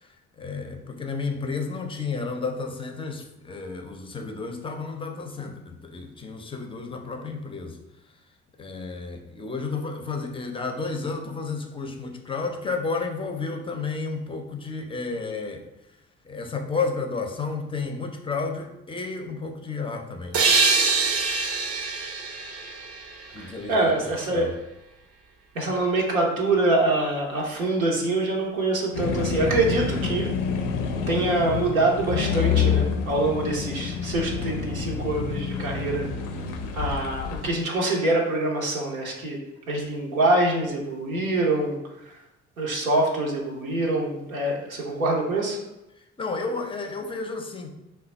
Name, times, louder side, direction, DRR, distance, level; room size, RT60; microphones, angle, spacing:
voice 1, 0.0-7.8 8.6-15.7 16.2-20.5 23.3-23.9 24.3-24.6 46.2-47.7, left 4 dB, 15° left, 5 dB, 0.4 m, -32 dB
sound 1, 20.3-23.8, right 4 dB, 35° right, 0.5 m, -24 dB
voice 2, 23.4-24.5 25.5-30.3 31.1-36.1 36.7-39.4 39.7-41.8 42.6-45.6, right 2 dB, 90° right, -1 dB, 0.6 m, -25 dB
sound 2, 28.9-37.5, left 6 dB, 70° left, 0.5 m, -28 dB
3.2 x 2.1 x 4.1 m, 0.90 s
figure-of-eight pair, 45°, 40 cm